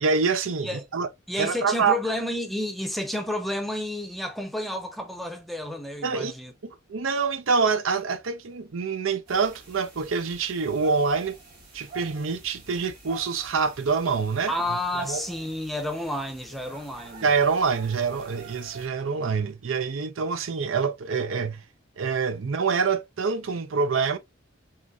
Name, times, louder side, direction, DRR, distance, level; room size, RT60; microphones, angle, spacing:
voice 1, 0.0-1.1 1.4-2.0 6.0-6.3 6.6-11.4 11.7-14.5 15.0-15.2 17.2-21.6 22.0-24.2, right 5 dB, 75° right, 0.6 m, -26 dB
voice 2, 1.3-6.5 14.5-17.3, left 1 dB, ahead, 0.5 m, -30 dB
sound 1, 9.3-18.9, right 3 dB, 45° right, 2.0 m, -46 dB
3.8 x 3.0 x 2.3 m
head